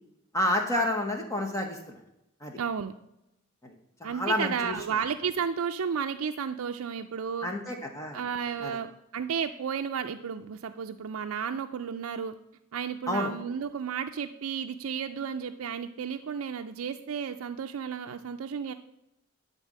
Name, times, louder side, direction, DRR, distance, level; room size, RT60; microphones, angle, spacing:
voice 1, 0.3-2.0 2.4-2.6 3.6-3.7 4.0-4.7 7.4-8.2 8.6-8.8 13.1-13.3, left 1 dB, 15° left, 2 dB, 1.0 m, -29 dB
voice 2, 2.5-2.9 4.0-7.5 8.1-12.3 12.7-18.7, right 7 dB, 85° right, 6 dB, 0.4 m, -33 dB
11.5 x 4.1 x 7.4 m, 0.87 s
head